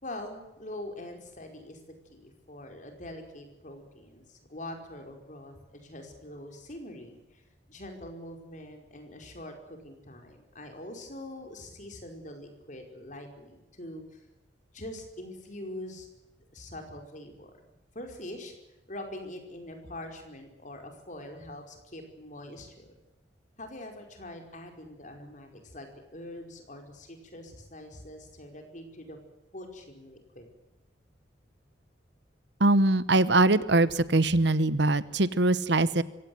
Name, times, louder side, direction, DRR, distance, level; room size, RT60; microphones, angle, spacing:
voice 1, 0.0-1.8 2.0-7.4 7.7-14.2 14.7-16.1 16.5-17.6 17.9-18.5 18.9-23.0 23.6-29.2 29.5-30.5, left 1 dB, 45° left, 4 dB, 5.1 m, -43 dB
voice 2, 32.6-36.0, right 2 dB, 65° right, 16 dB, 1.1 m, -22 dB
25.0 x 17.0 x 8.0 m, 0.99 s
head